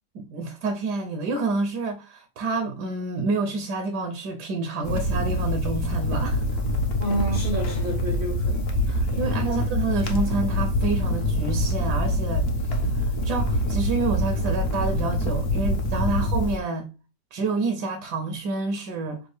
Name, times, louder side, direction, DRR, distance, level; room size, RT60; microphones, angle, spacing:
voice 1, 0.1-6.4 8.9-16.9 17.3-19.2, right 3 dB, 70° right, 1.2 m, -28 dB
sound 1, 4.8-16.6, left 1 dB, 60° left, 0.6 m, -25 dB
voice 2, 7.0-8.7 9.1-9.6, equal, 50° right, 0.6 m, -30 dB
6.1 x 2.4 x 3.1 m
omnidirectional pair, 1.9 m